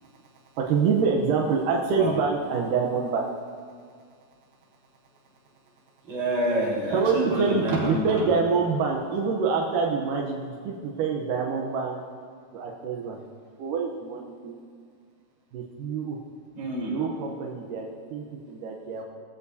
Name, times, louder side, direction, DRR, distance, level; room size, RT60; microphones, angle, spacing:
voice 1, 0.6-3.3 6.9-12.0 12.5-13.2 13.6-14.6 15.5-16.2 16.9-19.0, right 5 dB, 75° right, 0 dB, 2.0 m, -26 dB
voice 2, 6.0-8.2 16.6-17.0, right 1 dB, 45° right, -6 dB, 5.2 m, -27 dB
20.0 x 15.0 x 2.8 m, 2.1 s
omnidirectional pair, 4.9 m